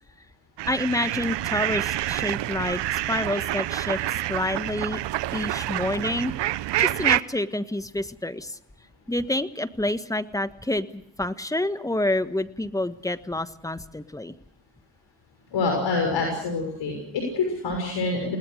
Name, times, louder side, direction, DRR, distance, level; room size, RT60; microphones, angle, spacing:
sound 1, 0.6-7.2, right 14 dB, 65° right, 0.9 m, -27 dB
voice 1, 0.7-5.0 5.3-6.3 6.8-8.6 9.1-14.3, left 1 dB, 5° left, 12 dB, 1.3 m, -28 dB
voice 2, 15.5-18.4, left 3 dB, 65° left, 2 dB, 6.3 m, -26 dB
29.0 x 19.5 x 6.6 m, 0.72 s
supercardioid pair, 75°, 46 cm